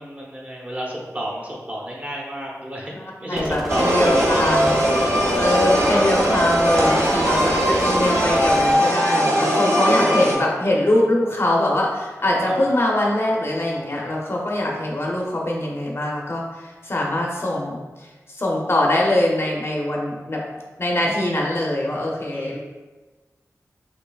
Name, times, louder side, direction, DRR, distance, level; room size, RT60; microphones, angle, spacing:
voice 1, 0.0-3.9 4.1-4.8 7.7-7.8 10.2-10.4 12.4-12.7 22.3-22.6, right 1 dB, 25° right, -3 dB, 0.8 m, -32 dB
voice 2, 3.3-4.8 5.4-20.4 20.8-22.6, left 1 dB, 45° left, -2 dB, 0.6 m, -23 dB
sound 1, 3.4-8.8, equal, ahead, 0.4 m, -32 dB
sound 2, 3.7-10.3, equal, 55° right, 0.7 m, -19 dB
4.4 x 2.8 x 2.3 m, 1.3 s
wide cardioid pair, 60°, 6 cm